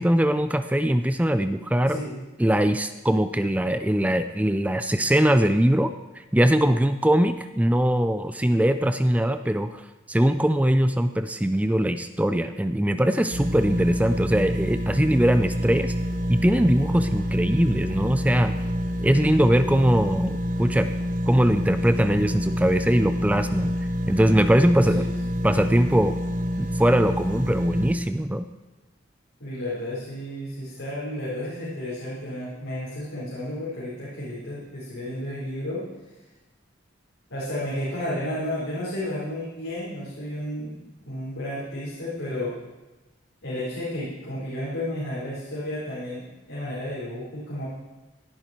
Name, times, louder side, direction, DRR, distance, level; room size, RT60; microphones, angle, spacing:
voice 1, 0.0-2.0 2.4-5.9 6.3-9.8 10.1-15.9 16.3-18.5 19.0-20.9 21.3-23.7 24.1-25.0 25.4-26.2 26.6-28.5, equal, 5° right, 10 dB, 0.4 m, -21 dB
voice 2, 1.9-2.2 24.9-25.5 29.4-35.8 37.3-42.5 43.4-47.6, left 1 dB, 85° left, -9 dB, 4.6 m, -32 dB
sound 1, 13.3-28.0, equal, 40° right, 0.9 m, -27 dB
17.5 x 10.0 x 4.6 m, 1.1 s
head